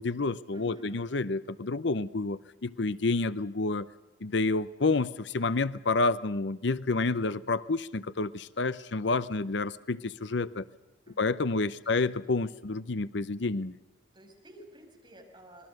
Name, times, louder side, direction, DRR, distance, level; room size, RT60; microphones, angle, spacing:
voice 1, 0.0-3.9 4.2-10.6 11.2-13.7, left 3 dB, 65° left, 16 dB, 0.7 m, -29 dB
voice 2, 0.5-1.0 11.1-11.4 11.8-12.0 14.1-15.7, right 1 dB, 25° right, 0 dB, 6.2 m, -52 dB
26.5 x 20.5 x 6.5 m, 1.1 s
head